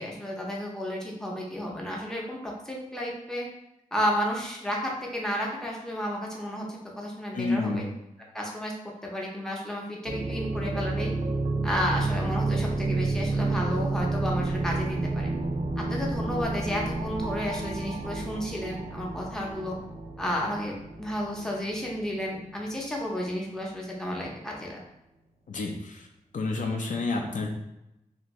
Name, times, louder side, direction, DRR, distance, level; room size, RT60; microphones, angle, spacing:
voice 1, 0.0-3.5 3.9-7.8 8.3-8.7 9.0-11.1 11.6-15.3 15.8-19.8 20.2-24.8, equal, 5° left, -3 dB, 0.6 m, -32 dB
voice 2, 7.3-7.9 25.5-26.1 26.3-27.5, left 3 dB, 65° left, 1 dB, 0.5 m, -29 dB
sound 1, 10.1-22.8, right 2 dB, 45° right, 0.3 m, -30 dB
2.6 x 2.6 x 3.1 m, 0.88 s
wide cardioid pair, 110°, 14 cm